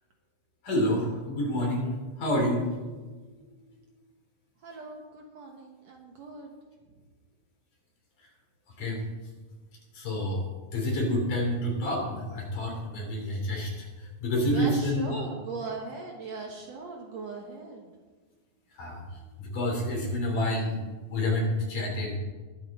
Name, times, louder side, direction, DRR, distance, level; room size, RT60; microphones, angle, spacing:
voice 1, 0.6-2.7 8.8-9.0 9.9-10.4 10.7-13.9 14.2-15.2 18.8-19.0 19.4-20.8 21.1-22.2, left 1 dB, 60° left, -1 dB, 4.8 m, -28 dB
voice 2, 4.6-6.5 14.5-17.9, right 3 dB, 60° right, 1 dB, 2.0 m, -39 dB
21.0 x 8.0 x 4.2 m, 1.3 s
omnidirectional pair, 4.1 m